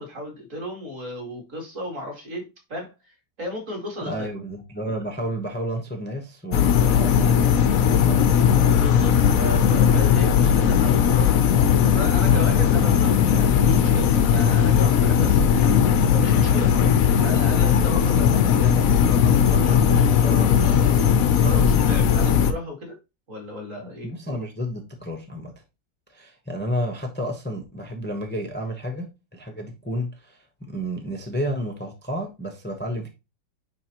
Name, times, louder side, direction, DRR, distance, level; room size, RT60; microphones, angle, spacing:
voice 1, 0.0-4.3 8.7-11.5 11.8-23.0 23.3-24.1, left 1 dB, 40° right, 2.6 m, -35 dB
voice 2, 4.0-8.4 24.0-25.5 26.1-29.1 29.3-33.1, equal, 15° left, 0.4 m, -31 dB
sound 1, 6.5-22.5, left 8 dB, 65° left, 0.9 m, -18 dB
9.4 x 3.6 x 2.9 m
omnidirectional pair, 2.1 m